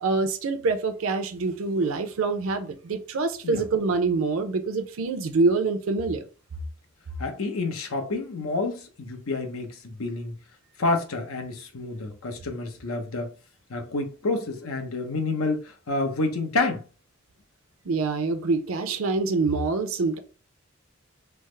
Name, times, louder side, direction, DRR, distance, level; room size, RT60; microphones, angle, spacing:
voice 1, 0.0-6.2 17.9-20.2, right 3 dB, 75° right, 0.5 m, -25 dB
voice 2, 7.2-10.3 10.8-13.3 13.7-16.8, left 3 dB, 90° left, 0.7 m, -29 dB
3.4 x 2.0 x 3.2 m
head